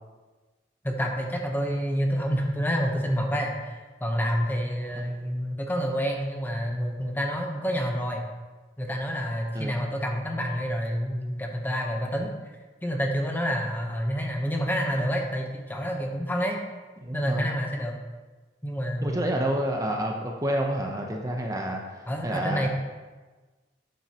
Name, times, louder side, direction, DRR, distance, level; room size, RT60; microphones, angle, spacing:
voice 1, 0.8-8.3 8.8-12.3 12.8-16.6 17.1-18.0 18.6-19.3 22.1-22.7, equal, 10° left, 1 dB, 0.9 m, -28 dB
voice 2, 17.0-17.5 19.0-22.7, right 1 dB, 20° right, 1 dB, 0.7 m, -29 dB
8.6 x 7.7 x 2.9 m, 1.3 s
head